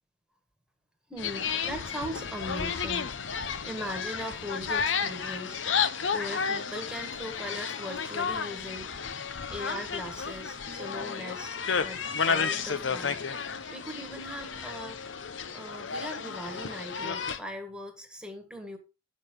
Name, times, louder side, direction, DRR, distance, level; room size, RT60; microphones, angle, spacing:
voice 1, 1.1-5.6 6.1-8.9 9.5-13.2 13.5-15.0 15.5-18.8, equal, 5° right, 1.6 m, -40 dB
sound 1, 1.2-17.4, left 6 dB, 80° left, 0.8 m, -32 dB
8.9 x 6.4 x 4.8 m
head